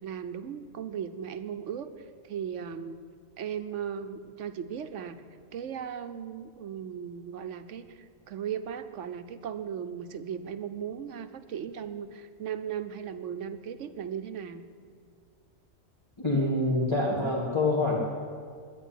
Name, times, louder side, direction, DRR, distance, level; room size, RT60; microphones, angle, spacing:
voice 1, 0.0-1.9 2.2-3.0 3.4-5.2 5.5-14.6, right 8 dB, 70° right, 10 dB, 1.1 m, -37 dB
voice 2, 16.2-18.0, left 2 dB, 20° left, -5 dB, 1.8 m, -26 dB
11.0 x 10.0 x 10.0 m, 2.1 s
omnidirectional pair, 1.4 m